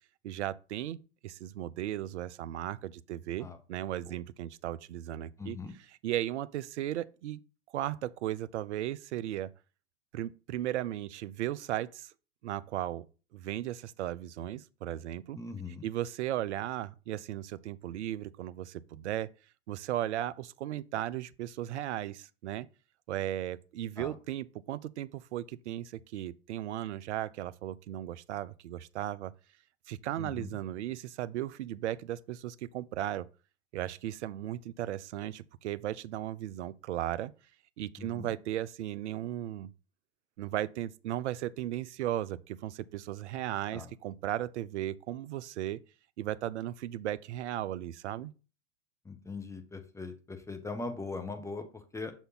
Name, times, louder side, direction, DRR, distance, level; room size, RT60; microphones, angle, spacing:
voice 1, 0.2-1.0 1.2-5.6 6.0-7.4 7.7-9.5 10.1-12.1 12.4-13.1 13.3-15.4 15.8-19.3 19.7-22.7 23.1-29.3 29.9-33.3 33.7-37.3 37.8-39.7 40.4-45.8 46.2-48.3, right 13 dB, 70° right, 0.5 m, -36 dB
voice 2, 5.4-5.7 15.3-15.9 24.0-24.1 30.2-30.6 38.0-38.3 43.7-43.9 49.0-52.1, left 3 dB, 10° left, 0.8 m, -40 dB
6.6 x 4.1 x 3.9 m
hypercardioid pair, 95°, 36 cm